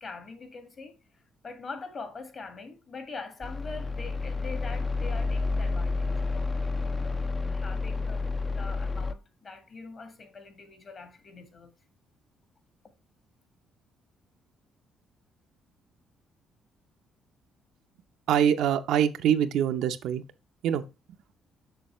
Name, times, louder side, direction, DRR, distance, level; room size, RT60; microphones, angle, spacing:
voice 1, 0.0-8.3 8.6-11.7, left 4 dB, 40° left, 1.7 m, -43 dB
sound 1, 3.4-9.1, left 3 dB, 15° left, 0.5 m, -30 dB
voice 2, 18.3-20.2 20.6-20.8, right 9 dB, 80° right, 0.6 m, -24 dB
6.7 x 6.4 x 3.1 m
cardioid pair, 125°, 0 cm